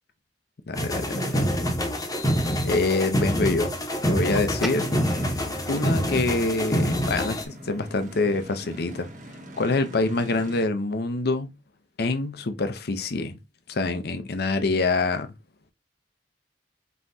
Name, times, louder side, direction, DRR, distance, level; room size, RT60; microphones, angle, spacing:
voice 1, 0.7-1.5 2.6-3.7 4.1-4.9 5.7-9.1 9.6-11.5 12.0-13.4 13.7-15.3, left 3 dB, 65° left, 0.7 m, -25 dB
sound 1, 0.7-7.4, equal, 20° left, 0.9 m, -26 dB
sound 2, 4.0-10.7, equal, 45° right, 1.2 m, -43 dB
sound 3, 4.5-9.1, equal, ahead, 0.5 m, -40 dB
5.5 x 3.0 x 2.7 m
head